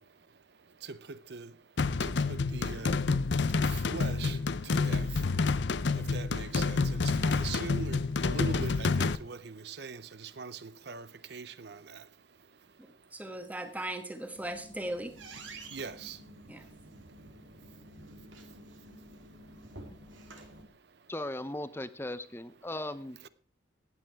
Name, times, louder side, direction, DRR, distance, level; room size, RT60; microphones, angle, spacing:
voice 1, 0.0-13.7 14.3-14.4 15.3-21.1 23.2-23.3, right 4 dB, 60° right, 0.6 m, -45 dB
sound 1, 1.8-9.2, left 4 dB, 65° left, 0.6 m, -29 dB
voice 2, 13.1-15.1 16.5-16.7, right 1 dB, 10° right, 1.3 m, -38 dB
sound 2, 14.1-20.6, right 2 dB, 80° right, 2.6 m, -50 dB
voice 3, 21.1-23.2, left 1 dB, 10° left, 0.6 m, -37 dB
16.5 x 9.1 x 4.6 m
head